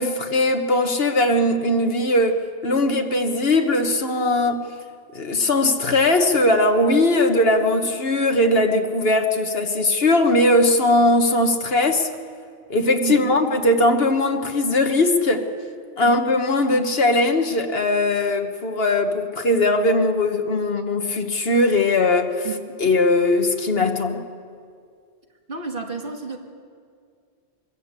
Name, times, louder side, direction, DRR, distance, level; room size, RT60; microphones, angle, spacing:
voice 1, 0.0-4.7 5.1-12.1 12.7-15.4 16.0-22.5 22.8-24.3, left 2 dB, 55° left, 5 dB, 1.5 m, -19 dB
voice 2, 13.0-13.4 16.0-16.1 22.4-22.5 25.5-26.4, right 5 dB, 50° right, 2 dB, 2.0 m, -30 dB
23.5 x 15.0 x 8.2 m, 2.2 s
omnidirectional pair, 1.2 m